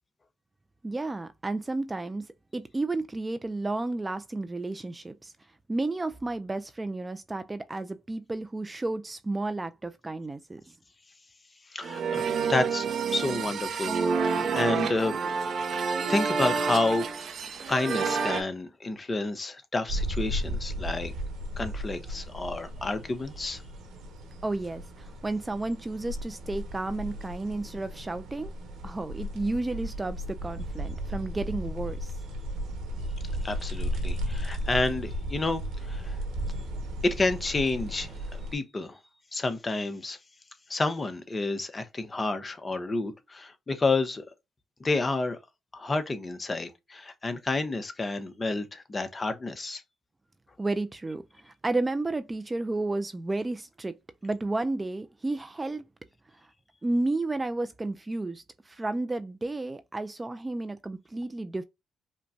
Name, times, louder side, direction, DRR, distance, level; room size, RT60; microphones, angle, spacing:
voice 1, 0.8-5.3 5.7-10.7 24.4-28.5 28.8-32.1 50.6-54.0 54.2-55.8 56.8-61.6, right 2 dB, 20° right, 0.4 m, -32 dB
voice 2, 11.7-15.2 16.1-17.1 17.7-21.1 21.6-23.6 33.4-36.2 37.0-39.0 39.3-40.2 40.7-44.2 44.8-45.4 45.7-49.8, left 3 dB, 25° left, 0.8 m, -30 dB
sound 1, 11.8-18.4, right 5 dB, 60° right, 0.6 m, -28 dB
sound 2, 19.9-38.5, equal, 85° right, 1.4 m, -35 dB
5.1 x 2.2 x 2.6 m
cardioid pair, 90°, 0 cm